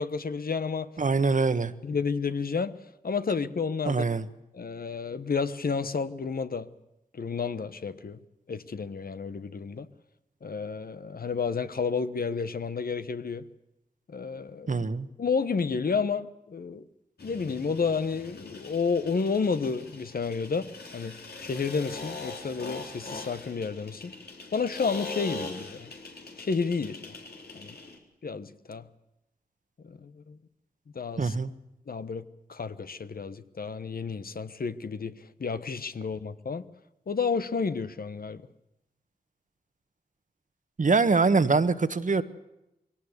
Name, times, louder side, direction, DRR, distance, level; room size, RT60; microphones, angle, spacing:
voice 1, 0.0-0.9 1.8-2.8 3.0-4.0 4.5-6.7 7.1-8.2 8.5-9.9 10.4-13.5 14.1-14.8 15.2-16.8 17.2-24.1 24.5-25.9 26.4-27.1 27.5-27.7 28.2-28.9 29.8-30.4 30.9-31.3 31.9-32.2 32.5-35.1 35.4-36.6 37.1-38.4, left 5 dB, 65° left, 1.3 m, -31 dB
voice 2, 1.0-1.7 3.8-4.3 14.7-15.1 31.2-31.5 40.8-42.2, right 4 dB, 50° right, 1.4 m, -24 dB
sound 1, 17.2-28.0, left 3 dB, 80° left, 4.0 m, -42 dB
22.0 x 18.0 x 8.2 m
cardioid pair, 65°, 16 cm